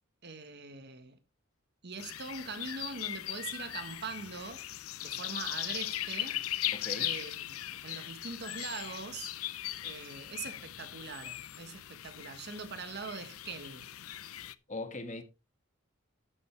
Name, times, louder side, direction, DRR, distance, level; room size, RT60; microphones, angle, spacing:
voice 1, 0.2-1.2 1.8-4.6 5.0-6.4 7.0-9.3 9.8-13.9, right 4 dB, 50° right, 1.4 m, -42 dB
sound 1, 2.0-14.5, left 14 dB, 90° left, 0.6 m, -39 dB
voice 2, 6.7-7.1 14.7-15.2, left 2 dB, 35° left, 1.7 m, -39 dB
12.5 x 8.2 x 3.4 m
head